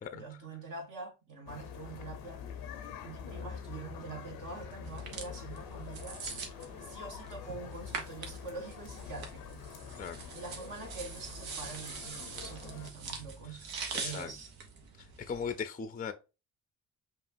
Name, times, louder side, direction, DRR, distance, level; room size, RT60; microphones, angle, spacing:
voice 1, 0.1-2.4 3.0-6.2 6.8-9.6 10.3-13.6 13.9-14.5, right 4 dB, 60° right, 1.4 m, -45 dB
sound 1, 1.5-12.9, left 7 dB, 85° left, 0.6 m, -46 dB
sound 2, 4.8-15.6, right 5 dB, 90° right, 0.9 m, -44 dB
voice 2, 9.9-10.2 13.9-14.3 15.2-16.1, left 6 dB, 25° left, 0.4 m, -38 dB
5.4 x 2.4 x 2.6 m
supercardioid pair, 65°, 36 cm